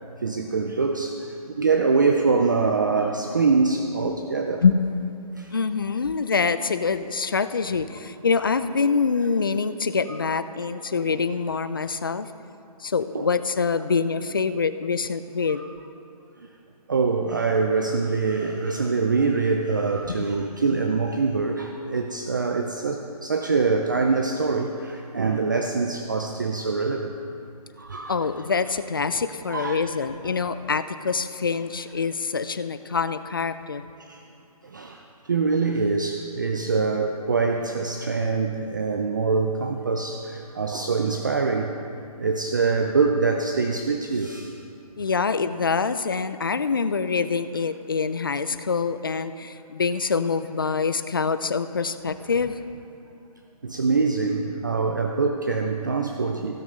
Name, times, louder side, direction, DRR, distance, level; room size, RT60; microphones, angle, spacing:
voice 1, 0.2-4.6 5.4-5.5 10.1-10.2 13.1-13.3 13.7-13.8 15.5-15.6 16.9-27.1 27.8-28.2 29.5-29.9 30.5-30.6 34.1-34.2 34.7-35.0 35.3-41.7 42.2-44.5 53.6-56.6, right 4 dB, 30° right, 4 dB, 0.4 m, -24 dB
voice 2, 4.6-5.1 5.5-12.3 12.8-15.6 20.1-20.3 28.1-33.8 45.0-52.6, left 5 dB, 35° left, 12 dB, 0.4 m, -25 dB
15.5 x 6.5 x 5.3 m, 2.6 s
hypercardioid pair, 170°, 20 cm